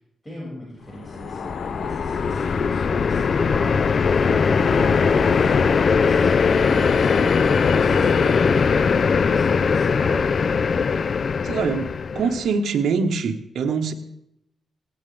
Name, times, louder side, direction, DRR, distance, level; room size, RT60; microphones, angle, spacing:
voice 1, 0.2-3.9 4.2-10.3, equal, 15° left, -6 dB, 6.4 m, -38 dB
sound 1, 0.9-9.2, left 6 dB, 65° left, 1.0 m, -28 dB
sound 2, 1.1-12.5, left 5 dB, 45° left, 0.5 m, -20 dB
voice 2, 11.4-11.9 12.1-13.9, right 5 dB, 75° right, 4 dB, 1.7 m, -23 dB
18.5 x 17.5 x 3.5 m, 0.80 s
cardioid pair, 120°, 0 cm